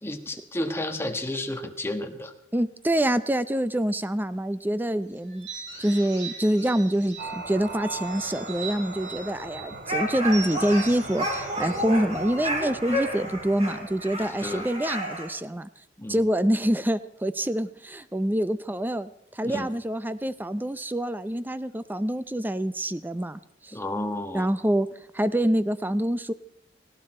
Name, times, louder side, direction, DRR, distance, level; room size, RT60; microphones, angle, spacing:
voice 1, 0.0-2.3 14.4-14.7 16.0-16.2 19.4-19.7 23.7-24.5, left 1 dB, 15° left, 5 dB, 1.3 m, -31 dB
voice 2, 2.5-15.7 16.1-23.8 24.3-26.3, right 1 dB, 10° right, 14 dB, 0.6 m, -26 dB
sound 1, 5.3-7.4 7.8-9.7 10.3-12.8, right 5 dB, 75° right, 6.9 m, -41 dB
sound 2, 7.2-15.1, right 2 dB, 55° right, 2.8 m, -40 dB
sound 3, 9.9-15.3, equal, 35° right, 4.6 m, -31 dB
19.0 x 16.5 x 4.4 m, 0.76 s
head